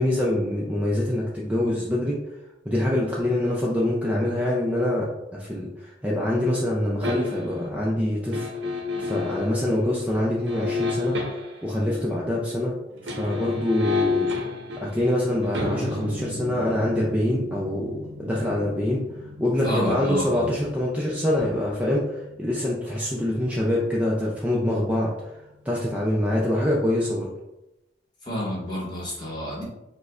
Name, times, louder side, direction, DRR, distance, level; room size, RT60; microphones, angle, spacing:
voice 1, 0.0-2.2 2.7-8.5 9.0-11.2 11.6-12.7 13.0-14.3 14.8-19.0 19.4-25.3 25.6-27.3, left 1 dB, 10° right, -4 dB, 0.4 m, -25 dB
Buzz basse électrique ampli, 7.0-7.6 8.3-9.5 10.5-11.7 12.9-23.9 24.2-24.3, left 3 dB, 80° right, 0.6 m, -32 dB
voice 2, 19.6-20.5 28.2-29.6, left 1 dB, 25° left, -5 dB, 1.1 m, -30 dB
4.9 x 2.1 x 2.4 m, 0.95 s
head